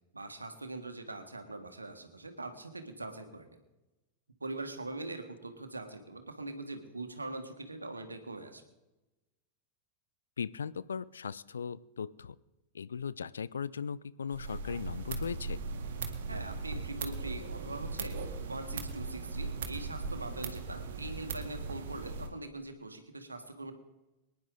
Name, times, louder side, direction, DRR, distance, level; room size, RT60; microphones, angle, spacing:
voice 1, 0.1-3.6 4.4-8.6 16.3-18.2 18.5-23.7, right 2 dB, 80° right, 7 dB, 1.6 m, -42 dB
voice 2, 10.4-12.4 12.7-15.6, left 6 dB, 70° left, 19 dB, 0.4 m, -38 dB
sound 1, 14.3-22.3, right 4 dB, 60° right, 1.8 m, -38 dB
24.0 x 10.5 x 3.9 m, 1.0 s
figure-of-eight pair, 90°, 0 cm